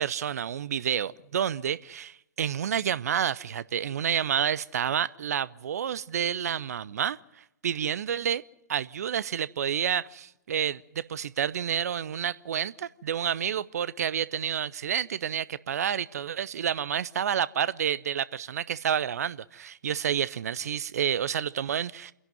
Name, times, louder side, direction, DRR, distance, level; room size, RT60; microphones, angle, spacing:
voice 1, 0.0-8.4 8.7-22.1, right 9 dB, 55° right, 0.6 m, -29 dB
28.0 x 11.0 x 9.2 m
figure-of-eight pair, 125°, 10 cm